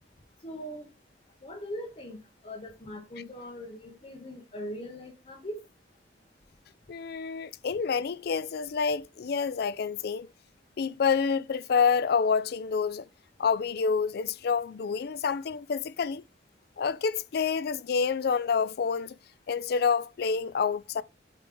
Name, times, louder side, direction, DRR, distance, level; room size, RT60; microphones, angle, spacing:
voice 1, 0.4-0.9 1.4-5.6, equal, 35° left, 1.1 m, -40 dB
voice 2, 6.9-10.3 10.8-13.1 13.4-16.2 16.8-19.2 19.5-21.0, left 5 dB, 55° left, 0.4 m, -28 dB
8.3 x 3.2 x 3.7 m
head